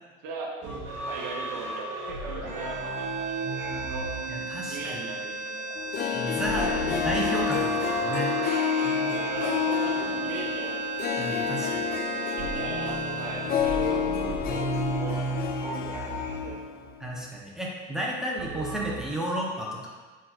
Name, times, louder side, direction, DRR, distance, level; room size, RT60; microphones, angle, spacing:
voice 1, 0.2-0.5 1.0-4.1 4.7-5.8 6.5-6.8 9.3-10.9 12.0-16.6, right 3 dB, 90° right, -1 dB, 0.7 m, -39 dB
sound 1, 0.6-5.2 6.4-11.2 12.4-17.0 18.4-19.0, right 2 dB, 65° right, 1.0 m, -35 dB
sound 2, 2.4-14.7, right 5 dB, 35° right, 0.6 m, -35 dB
voice 2, 4.3-5.0 6.1-6.7 7.0-8.4 11.2-11.8 17.0-19.9, right 1 dB, ahead, -3 dB, 0.9 m, -32 dB
Harp, 5.8-16.8 17.0-17.1, left 7 dB, 50° left, 0.4 m, -29 dB
4.0 x 2.5 x 4.2 m, 1.4 s
supercardioid pair, 80°, 21 cm